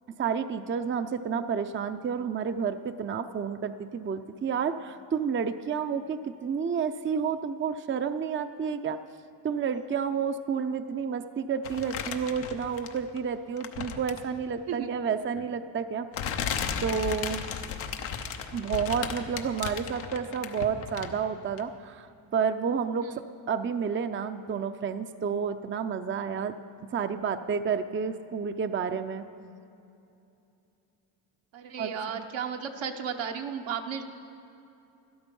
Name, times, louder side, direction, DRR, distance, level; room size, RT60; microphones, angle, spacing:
voice 1, 0.2-9.0 9.4-16.4 16.8-17.4 18.5-22.1 22.3-23.1 23.5-26.5 26.9-29.2 31.8-31.9, right 6 dB, 25° right, 9 dB, 0.5 m, -30 dB
sound 1, 11.6-13.2 13.6-14.3 15.3-15.4 16.1-21.3 21.6-21.7, left 7 dB, 85° left, 0.9 m, -35 dB
voice 2, 31.5-34.0, right 7 dB, 70° right, 4 dB, 1.1 m, -34 dB
12.5 x 12.0 x 5.4 m, 2.7 s
supercardioid pair, 65°, 47 cm